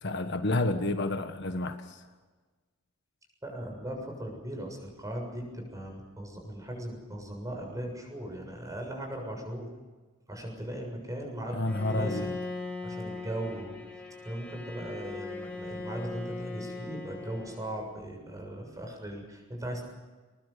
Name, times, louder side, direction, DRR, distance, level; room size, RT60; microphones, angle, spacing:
voice 1, 0.0-2.0 11.5-12.3, left 2 dB, 55° left, 7 dB, 1.4 m, -30 dB
voice 2, 3.4-9.7 10.3-12.3 12.8-13.8 14.2-19.8, right 1 dB, 15° right, 2 dB, 7.0 m, -38 dB
Bowed string instrument, 11.7-17.9, left 3 dB, 5° left, 4.7 m, -39 dB
22.0 x 22.0 x 6.8 m, 1.3 s
head